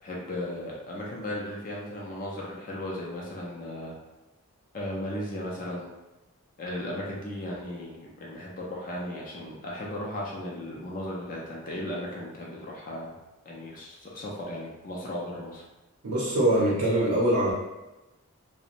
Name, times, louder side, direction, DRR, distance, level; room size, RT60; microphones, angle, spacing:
voice 1, 0.0-3.9 4.7-5.9 6.6-13.1 13.5-15.6, left 1 dB, 35° left, -3 dB, 0.4 m, -36 dB
voice 2, 16.0-17.5, right 1 dB, 85° right, -7 dB, 0.6 m, -23 dB
2.5 x 2.0 x 2.8 m, 1.0 s
head